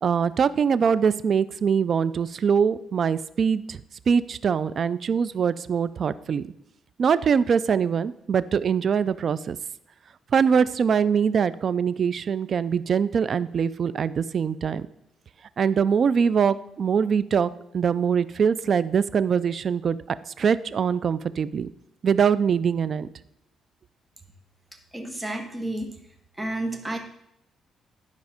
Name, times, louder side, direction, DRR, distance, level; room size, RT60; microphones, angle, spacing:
voice 1, 0.0-3.8 4.1-6.5 7.0-9.6 10.3-14.9 15.6-20.0 20.4-21.7 22.0-23.1, right 6 dB, 50° right, 17 dB, 0.4 m, -23 dB
voice 2, 24.9-26.0 26.4-27.0, right 1 dB, 10° right, 5 dB, 1.5 m, -31 dB
10.5 x 5.2 x 5.0 m, 0.78 s
cardioid pair, 90°, 0 cm